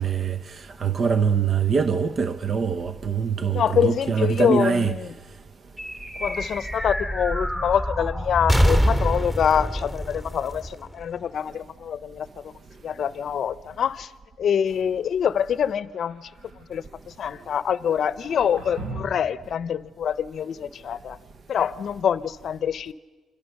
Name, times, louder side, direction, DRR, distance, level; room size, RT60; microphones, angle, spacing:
voice 1, 0.0-4.9, right 6 dB, 45° right, 0.8 m, -23 dB
voice 2, 3.5-5.1 6.2-12.5 12.8-14.1 14.4-16.3 16.7-21.2 21.5-22.9, left 8 dB, 60° left, 0.7 m, -25 dB
sound 1, 5.8-11.5, equal, 15° right, 2.8 m, -25 dB
sound 2, 15.9-16.7 18.2-19.4, right 2 dB, 80° right, 5.8 m, -39 dB
29.0 x 25.0 x 6.6 m
cardioid pair, 90°, 0 cm